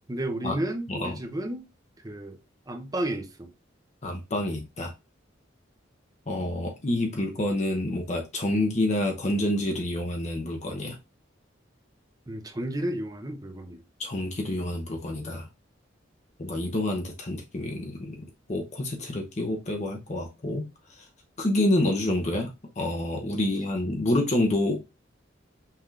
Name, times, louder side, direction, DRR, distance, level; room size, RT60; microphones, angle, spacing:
voice 1, 0.1-1.6 2.0-2.4 2.7-3.5 12.3-13.8, right 1 dB, 20° right, 0.7 m, -32 dB
voice 2, 4.0-4.9 6.3-11.0 14.0-15.5 16.4-20.7 21.4-24.8, left 1 dB, 40° left, 0.8 m, -28 dB
5.6 x 3.5 x 2.4 m
head